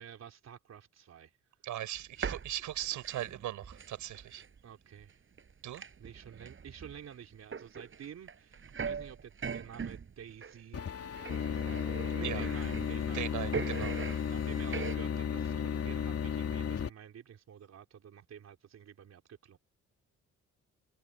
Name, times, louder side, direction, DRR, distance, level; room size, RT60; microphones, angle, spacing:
voice 1, 0.0-1.4 4.2-4.3 4.6-5.2 5.6-13.3 14.2-19.6, right 8 dB, 60° right, 4.0 m, -50 dB
voice 2, 1.6-4.4 5.6-5.8 12.2-12.5 13.1-14.0, right 13 dB, 80° right, 7.2 m, -38 dB
sound 1, 2.0-4.6 5.0-5.1 5.4-10.6 11.2-13.2 13.5-15.0, right 6 dB, 40° right, 6.4 m, -41 dB
sound 2, 10.7-16.9, left 7 dB, 50° left, 3.2 m, -34 dB
cardioid pair, 90°, 30 cm